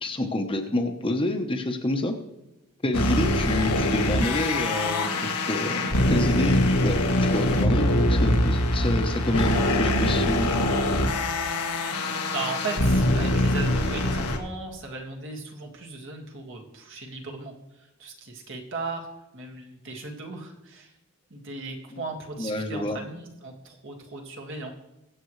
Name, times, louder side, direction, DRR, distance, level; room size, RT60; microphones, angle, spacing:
voice 1, 0.0-2.1 2.8-10.5 21.9-22.0 22.4-23.0, left 1 dB, 25° left, 4 dB, 1.0 m, -28 dB
sound 1, 2.9-14.4, left 1 dB, 90° left, 1.5 m, -23 dB
voice 2, 12.3-19.1 19.3-20.9 21.3-24.7, right 3 dB, 55° right, 1 dB, 1.9 m, -37 dB
23.0 x 7.6 x 3.2 m, 0.95 s
head